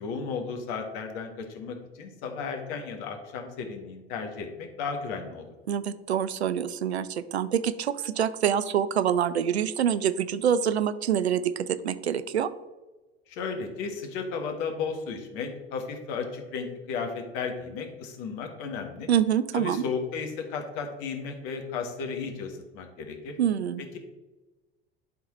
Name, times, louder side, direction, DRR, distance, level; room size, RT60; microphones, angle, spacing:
voice 1, 0.0-5.5 13.3-19.1 19.5-23.3, left 5 dB, 55° left, 4 dB, 1.5 m, -34 dB
voice 2, 5.7-12.5 19.1-19.8 23.4-23.8, right 9 dB, 80° right, 14 dB, 0.5 m, -26 dB
11.0 x 3.9 x 4.2 m, 1.2 s
figure-of-eight pair, 70°, 32 cm